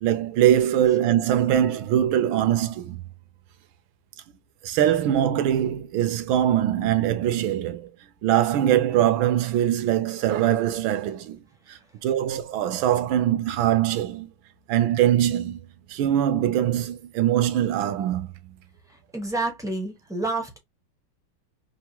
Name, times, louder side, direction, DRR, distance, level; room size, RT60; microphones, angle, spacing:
voice 1, 0.0-3.0 4.6-7.9 8.2-11.4 11.7-14.3 14.7-15.6 15.9-18.3, right 11 dB, 80° right, 1.4 m, -22 dB
voice 2, 19.1-20.6, right 2 dB, 5° right, 0.4 m, -28 dB
5.7 x 2.1 x 2.9 m
omnidirectional pair, 2.2 m